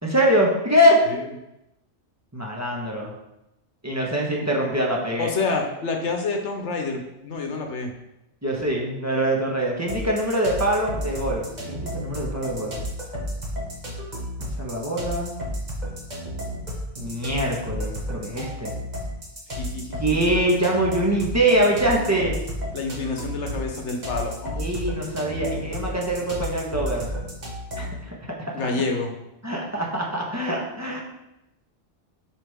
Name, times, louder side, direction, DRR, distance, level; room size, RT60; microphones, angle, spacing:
voice 1, 0.0-1.0 2.3-3.1 3.8-5.3 8.4-12.7 14.4-15.3 17.0-18.7 20.0-22.3 24.6-27.1 27.8-28.4 29.4-31.0, equal, 15° right, -3 dB, 1.3 m, -23 dB
voice 2, 5.2-7.9 19.6-20.0 21.9-22.2 22.7-24.6 28.5-29.1, left 3 dB, 75° left, 3 dB, 1.4 m, -28 dB
sound 1, 9.9-28.0, equal, 40° right, 1.5 m, -32 dB
7.2 x 5.3 x 3.6 m, 0.90 s
omnidirectional pair, 1.2 m